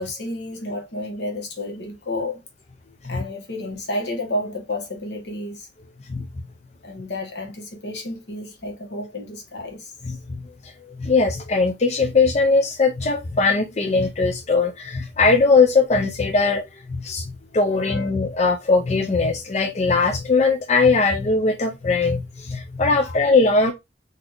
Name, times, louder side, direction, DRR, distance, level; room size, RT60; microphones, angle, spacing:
voice 1, 0.0-2.4 3.0-5.7 6.8-10.1 17.7-18.0 23.0-23.2, left 1 dB, 70° left, 1.3 m, -31 dB
voice 2, 10.0-16.6 16.9-23.7, left 4 dB, 40° left, 0.5 m, -20 dB
4.0 x 2.7 x 3.0 m
head